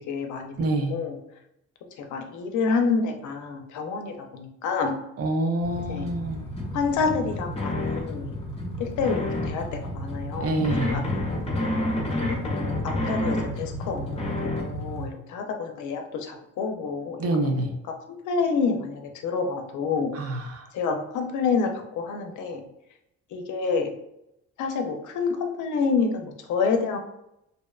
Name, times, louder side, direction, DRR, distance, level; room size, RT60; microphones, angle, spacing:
voice 1, 0.1-1.2 2.1-5.0 5.9-6.1 6.7-8.3 8.8-11.0 12.4-12.8 13.1-14.2 14.6-17.4 18.3-20.2 20.7-21.7 22.0-22.6 23.3-23.9 24.6-27.0, left 5 dB, 75° left, 4 dB, 0.5 m, -28 dB
voice 2, 0.6-1.0 5.2-6.4 10.4-11.1 17.2-17.7 20.1-20.7, right 2 dB, 55° right, 4 dB, 0.5 m, -26 dB
sound 1, 5.6-15.1, left 1 dB, 20° left, 0.6 m, -30 dB
2.7 x 2.1 x 2.2 m, 0.82 s
cardioid pair, 90°, 30 cm